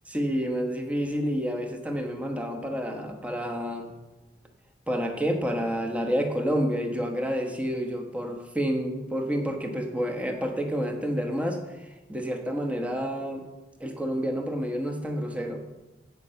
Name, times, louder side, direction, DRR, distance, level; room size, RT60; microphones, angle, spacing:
voice 1, 0.1-3.9 4.9-13.4 13.8-15.6, equal, 5° right, 3 dB, 1.1 m, -29 dB
15.0 x 5.5 x 5.6 m, 1.1 s
head